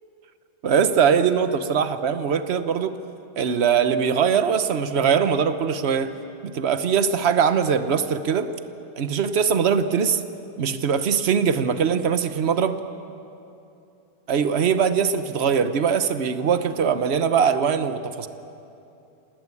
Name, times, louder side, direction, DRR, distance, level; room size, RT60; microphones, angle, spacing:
voice 1, 0.6-2.9 3.4-6.1 6.4-8.5 9.0-10.2 10.6-12.8 14.3-18.3, right 7 dB, 60° right, 10 dB, 0.6 m, -21 dB
28.0 x 19.0 x 8.5 m, 2.7 s
omnidirectional pair, 2.3 m